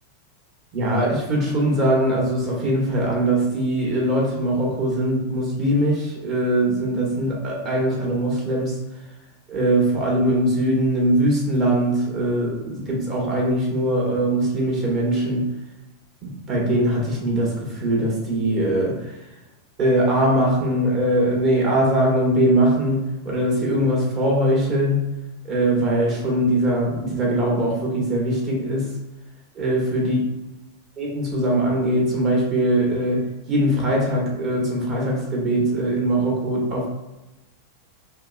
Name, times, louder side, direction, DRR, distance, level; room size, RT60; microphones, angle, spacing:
voice 1, 0.7-8.8 9.5-15.5 16.2-19.2 19.8-25.0 25.4-28.9 29.5-30.2 31.0-36.9, right 1 dB, 35° right, -2 dB, 1.3 m, -21 dB
3.5 x 2.9 x 2.4 m, 1.0 s
figure-of-eight pair, 90°, 0 cm